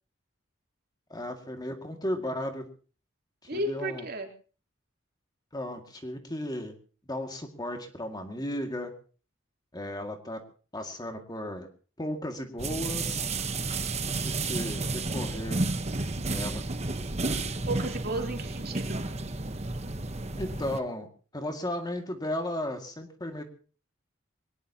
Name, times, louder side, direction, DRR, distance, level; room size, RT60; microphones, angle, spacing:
voice 1, 1.1-2.6 3.5-4.0 5.5-6.7 7.1-8.9 9.7-10.4 10.7-11.7 12.0-13.2 14.2-15.6 16.3-16.6 20.4-21.1 21.3-23.4, left 1 dB, 20° left, 5 dB, 2.2 m, -35 dB
voice 2, 3.5-4.3 17.7-19.1, right 2 dB, 50° right, 3 dB, 3.2 m, -33 dB
sound 1, 12.6-20.8, right 3 dB, 35° right, 1.2 m, -32 dB
22.5 x 19.5 x 2.9 m, 0.39 s
head